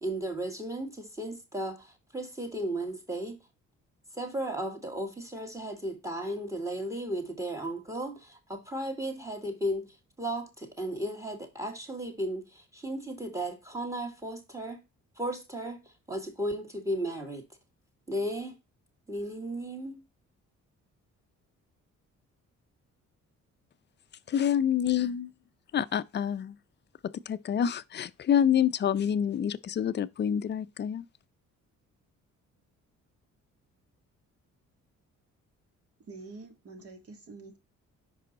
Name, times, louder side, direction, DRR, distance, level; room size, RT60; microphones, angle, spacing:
voice 1, 0.0-3.4 4.1-14.8 15.2-15.8 16.1-17.4 18.1-18.6 19.1-20.0, right 1 dB, 10° right, 2.1 m, -35 dB
voice 2, 24.3-25.3 25.7-26.6 27.3-31.0, left 9 dB, 35° left, 0.5 m, -27 dB
voice 3, 36.0-37.6, right 3 dB, 50° right, 1.9 m, -46 dB
5.5 x 5.1 x 4.0 m
cardioid pair, 90°, 30 cm